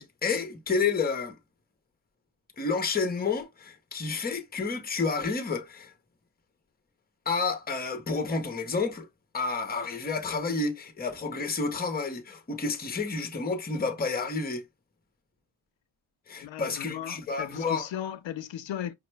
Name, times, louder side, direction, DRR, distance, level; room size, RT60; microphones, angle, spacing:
voice 1, 0.0-1.4 2.6-5.9 7.3-9.1 9.3-14.6 16.3-17.9, left 4 dB, 20° left, 0.7 m, -30 dB
voice 2, 16.4-18.9, left 10 dB, 70° left, 0.5 m, -36 dB
5.3 x 2.1 x 3.2 m
wide cardioid pair, 150°, 48 cm